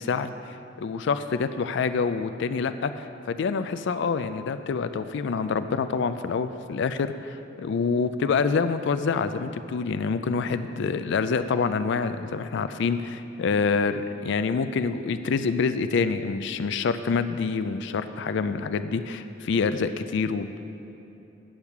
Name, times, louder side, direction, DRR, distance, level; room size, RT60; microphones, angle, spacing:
voice 1, 0.0-20.6, left 5 dB, 65° left, 11 dB, 0.4 m, -27 dB
8.8 x 8.2 x 5.9 m, 3.0 s
head